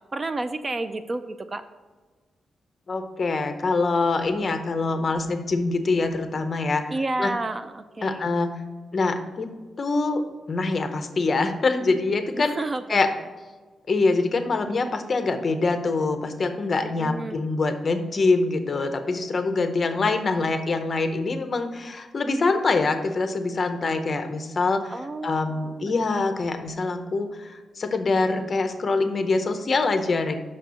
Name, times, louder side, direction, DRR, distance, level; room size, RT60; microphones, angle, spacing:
voice 1, 0.1-1.6 6.9-8.3 12.4-13.1 16.8-17.5 24.9-26.3, right 2 dB, 25° right, 10 dB, 0.3 m, -31 dB
voice 2, 2.9-6.8 7.2-7.3 8.0-8.6 8.9-9.5 9.8-10.2 10.5-12.5 12.9-13.1 13.9-24.9 25.2-30.4, left 3 dB, 35° left, 7 dB, 0.7 m, -24 dB
6.2 x 4.3 x 6.1 m, 1.3 s
wide cardioid pair, 165°, 0 cm